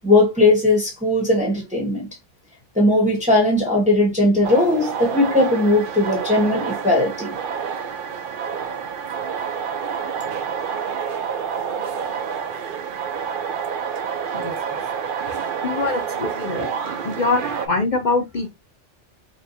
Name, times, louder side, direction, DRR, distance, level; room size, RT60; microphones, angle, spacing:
voice 1, 0.0-2.1 2.7-7.3, left 2 dB, 5° right, 1.4 m, -18 dB
sound 1, 4.4-17.7, right 7 dB, 55° right, 0.7 m, -28 dB
voice 2, 15.6-16.7 17.0-18.5, left 3 dB, 50° left, 0.7 m, -23 dB
5.4 x 2.6 x 2.7 m
omnidirectional pair, 1.2 m